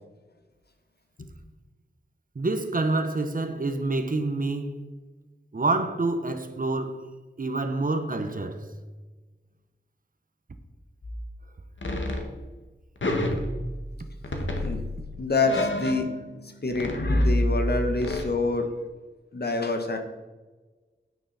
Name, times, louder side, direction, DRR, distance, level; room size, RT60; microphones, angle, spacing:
voice 1, 2.3-4.9 5.5-7.1 7.4-8.7, right 2 dB, 45° right, 1.0 m, -27 dB
sound 1, 11.0-11.3 11.8-12.3 13.0-14.0 14.2-16.4 16.7-18.2, left 1 dB, 75° left, 1.7 m, -28 dB
voice 2, 15.2-16.1 16.4-18.7 19.3-20.0, left 3 dB, 55° left, 1.4 m, -27 dB
9.4 x 9.3 x 4.2 m
wide cardioid pair, 95°, 20 cm